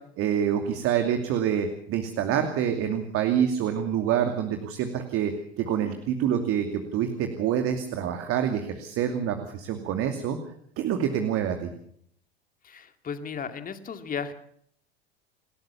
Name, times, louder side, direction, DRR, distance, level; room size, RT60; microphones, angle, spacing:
voice 1, 0.2-10.4 10.8-11.7, right 9 dB, 45° right, 6 dB, 2.7 m, -26 dB
voice 2, 12.6-14.3, left 6 dB, 25° left, 8 dB, 2.4 m, -35 dB
29.0 x 13.0 x 7.2 m, 0.66 s
hypercardioid pair, 85°, 31 cm